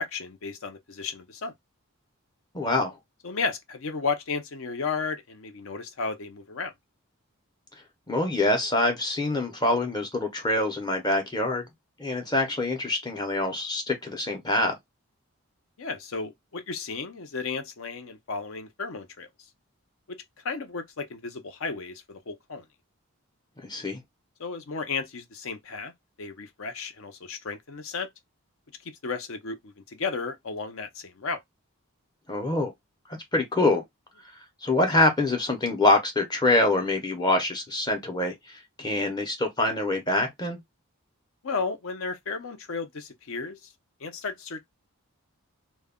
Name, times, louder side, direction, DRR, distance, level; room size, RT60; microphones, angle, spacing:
voice 1, 0.0-1.5 3.2-6.7 15.8-19.3 20.1-20.2 20.4-22.6 24.4-25.9 26.2-28.1 28.8-31.4 41.4-43.7 44.0-44.6, left 4 dB, 65° left, 0.6 m, -33 dB
voice 2, 2.5-2.9 8.1-11.7 12.0-14.7 23.6-24.0 32.3-32.7 33.3-33.8 34.6-40.6, left 2 dB, 20° left, 0.6 m, -25 dB
2.2 x 2.1 x 3.5 m
head